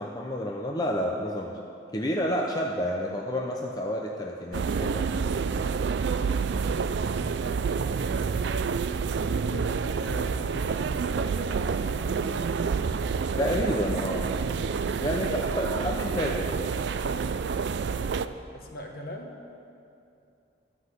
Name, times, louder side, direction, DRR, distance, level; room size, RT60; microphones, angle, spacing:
voice 1, 0.0-1.6 1.9-5.1 13.4-14.3 15.0-16.7, equal, 20° left, -1 dB, 0.6 m, -30 dB
sound 1, 4.5-18.3, right 5 dB, 65° right, 0.4 m, -28 dB
voice 2, 6.5-8.8 9.5-12.5 17.8-19.3, equal, 50° left, 2 dB, 1.2 m, -44 dB
13.0 x 6.0 x 8.0 m, 2.6 s
head